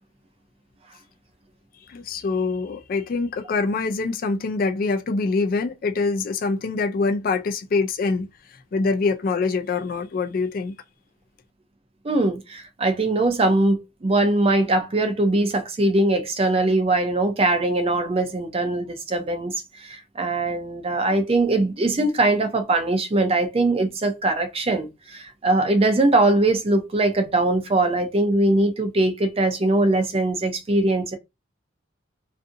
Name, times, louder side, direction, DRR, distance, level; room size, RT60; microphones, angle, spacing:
voice 1, 1.9-10.7, left 4 dB, 45° left, 0.3 m, -25 dB
voice 2, 12.0-19.5 19.8-31.2, right 2 dB, 30° right, 0.4 m, -21 dB
2.6 x 2.5 x 2.5 m
head